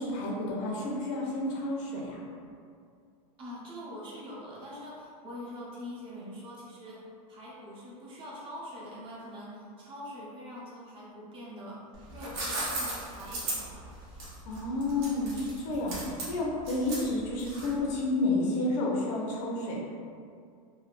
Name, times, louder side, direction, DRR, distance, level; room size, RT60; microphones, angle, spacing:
voice 1, 0.0-2.2 14.4-19.8, left 2 dB, 55° left, -3 dB, 0.6 m, -30 dB
voice 2, 3.4-7.0 7.3-11.8 12.1-13.9, left 1 dB, 30° right, -6 dB, 0.6 m, -44 dB
sound 1, 11.9-17.9, right 2 dB, 65° right, 1.0 m, -36 dB
3.2 x 2.1 x 2.5 m, 2.3 s
supercardioid pair, 145°, 18 cm